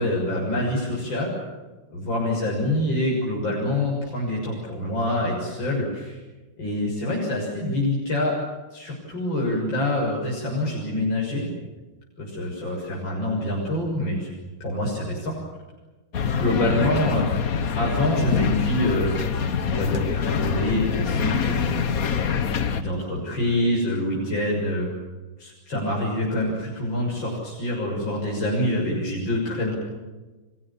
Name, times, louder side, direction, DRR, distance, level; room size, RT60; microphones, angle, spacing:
voice 1, 0.0-1.4 1.9-6.2 6.6-8.4 8.7-11.5 12.2-14.3 14.6-15.3 16.3-19.1 19.7-21.8 22.7-24.9 25.4-29.8, left 1 dB, 70° left, -4 dB, 7.4 m, -26 dB
sound 1, 16.1-22.8, left 6 dB, 50° left, 1.6 m, -25 dB
30.0 x 25.0 x 7.3 m, 1.2 s
omnidirectional pair, 2.1 m